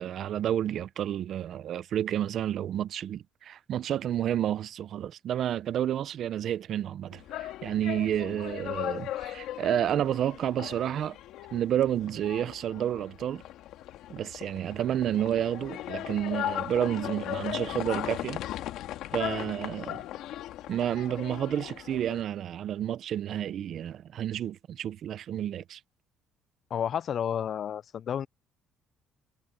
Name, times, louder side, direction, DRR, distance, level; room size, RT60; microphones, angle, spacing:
voice 1, 0.0-11.2 11.5-13.4 14.1-18.4 19.1-20.0 20.7-25.8, right 10 dB, 60° right, 0.7 m, -30 dB
sound 1, 7.1-22.2, left 13 dB, 80° left, 1.8 m, -38 dB
voice 2, 26.7-28.3, left 9 dB, 50° left, 0.4 m, -31 dB
cardioid pair, 105°, 0 cm